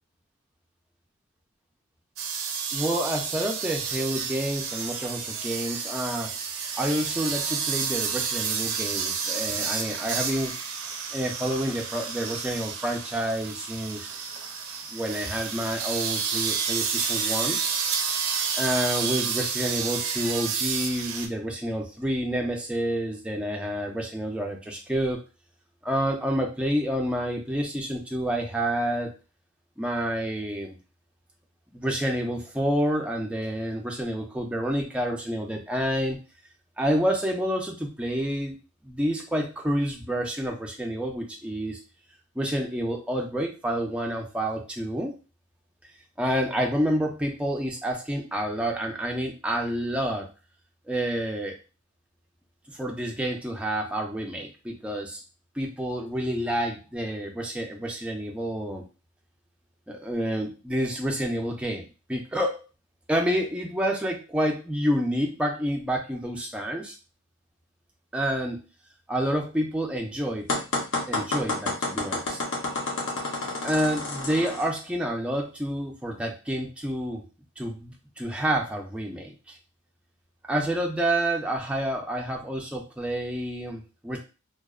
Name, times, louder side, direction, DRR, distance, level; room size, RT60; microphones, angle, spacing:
sound 1, 2.2-21.3, right 6 dB, 80° right, 0.4 m, -30 dB
voice 1, 2.7-6.3 6.8-10.5 11.1-14.1 14.9-17.6 18.6-25.2 25.8-29.1 29.8-30.8 31.7-36.2 36.8-38.6 38.8-41.8 42.4-45.1 46.2-50.3 50.9-51.6 52.7-55.2 55.6-58.8 59.9-62.6 63.1-66.9 68.1-68.6 69.1-70.5 71.1-72.4 73.6-77.3 77.6-79.6 80.5-84.2, equal, 5° right, 0 dB, 0.3 m, -28 dB
sound 2, 70.5-74.7, left 2 dB, 60° left, 0.6 m, -29 dB
2.7 x 2.0 x 2.3 m, 0.31 s
head